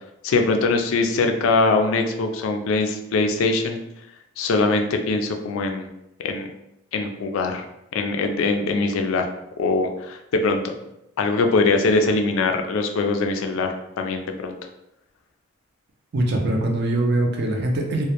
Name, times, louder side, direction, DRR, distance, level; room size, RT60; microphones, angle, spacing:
voice 1, 0.2-3.8 4.4-5.9 6.2-6.5 6.9-7.6 7.9-9.3 9.6-10.7 11.2-14.6, left 3 dB, 70° left, 5 dB, 0.3 m, -22 dB
voice 2, 16.1-18.0, right 1 dB, 50° right, 1 dB, 0.4 m, -22 dB
2.1 x 2.0 x 2.8 m, 0.84 s
head